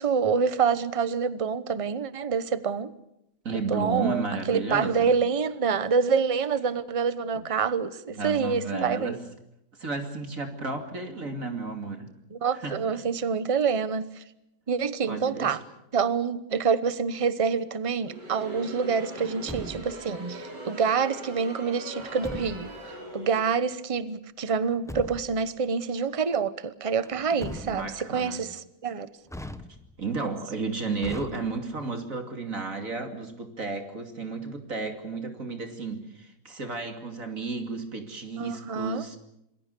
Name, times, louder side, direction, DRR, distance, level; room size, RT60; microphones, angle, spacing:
voice 1, 0.0-2.9 3.7-9.2 12.3-14.2 14.7-15.6 15.9-29.1 38.4-39.0, right 6 dB, 25° right, 15 dB, 0.7 m, -27 dB
voice 2, 3.4-5.1 7.3-7.4 8.1-9.2 9.8-12.1 12.5-13.0 15.1-15.6 27.6-28.4 30.0-39.2, right 3 dB, 45° right, 5 dB, 3.0 m, -33 dB
Crowd, 18.0-23.7, right 1 dB, 70° right, 5.3 m, -41 dB
Truck, 19.2-20.1 22.0-22.8 24.5-25.5 27.1-28.1 29.3-30.1 31.0-31.9, left 1 dB, ahead, 0.8 m, -41 dB
27.0 x 21.0 x 6.8 m, 0.82 s
omnidirectional pair, 1.9 m